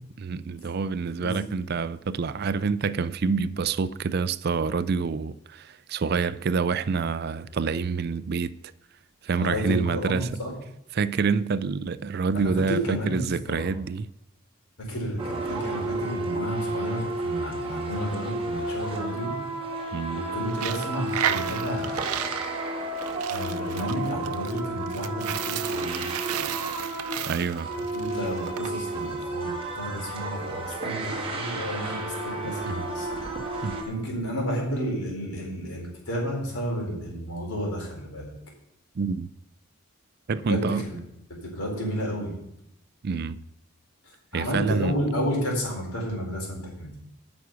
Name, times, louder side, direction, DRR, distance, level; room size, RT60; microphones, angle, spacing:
voice 1, 0.2-8.5 9.2-10.3 10.9-14.1 19.9-20.2 27.3-27.7 32.7-32.8 33.6-33.8 39.0-39.3 40.3-40.9 43.0-43.4 44.3-44.9, right 5 dB, 45° right, 0.4 m, -27 dB
voice 2, 9.4-10.5 12.3-13.7 14.8-19.3 20.1-22.5 23.3-26.3 27.9-33.3 33.9-38.3 40.4-41.0 41.5-42.3 44.3-47.0, equal, 85° left, 4.4 m, -31 dB
sound 1, 15.2-33.8, right 2 dB, 25° right, 1.6 m, -32 dB
Coin (dropping), 20.5-28.7, right 10 dB, 90° right, 0.6 m, -33 dB
9.6 x 6.0 x 8.1 m
head